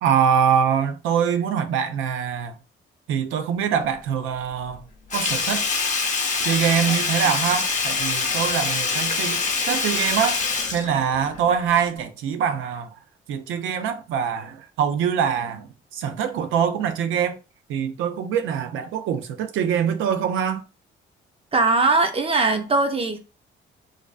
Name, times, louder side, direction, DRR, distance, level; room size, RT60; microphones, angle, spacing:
voice 1, 0.0-2.5 3.1-4.8 5.1-5.7 6.4-12.9 13.3-17.4 17.7-20.6, right 8 dB, 80° right, 0.4 m, -24 dB
Sink (filling or washing), 5.1-11.6 12.0-12.1, left 4 dB, 35° left, 0.6 m, -25 dB
voice 2, 21.5-23.2, right 3 dB, 30° right, 0.5 m, -20 dB
2.4 x 2.2 x 2.4 m
cardioid pair, 90°, 20 cm